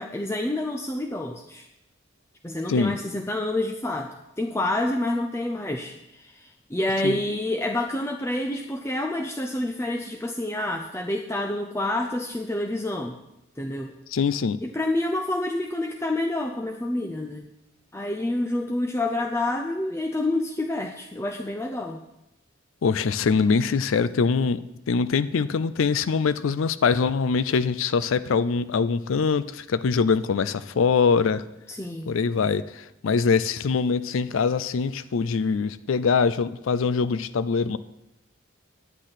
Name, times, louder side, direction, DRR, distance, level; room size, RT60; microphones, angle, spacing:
voice 1, 0.0-1.7 2.4-13.2 13.6-13.9 14.6-17.5 17.9-22.0 31.7-32.1, left 1 dB, 15° left, 3 dB, 0.5 m, -28 dB
voice 2, 14.1-14.6 22.8-24.6 24.9-31.4 32.1-37.8, left 5 dB, 80° left, 14 dB, 0.4 m, -23 dB
9.9 x 9.1 x 5.7 m, 0.87 s
head